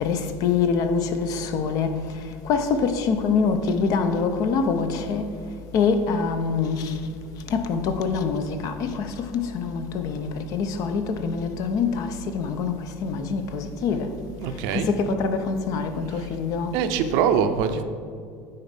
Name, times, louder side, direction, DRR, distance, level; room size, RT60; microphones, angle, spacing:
voice 1, 0.0-1.9 2.5-5.2 5.7-6.8 7.5-8.9 9.3-12.1 12.3-12.7 13.0-14.1 14.7-16.7, left 5 dB, 55° left, 0.8 m, -24 dB
voice 2, 14.4-14.9 16.7-17.8, right 7 dB, 65° right, 0.7 m, -23 dB
9.6 x 4.4 x 5.1 m
hypercardioid pair, 85°, 7 cm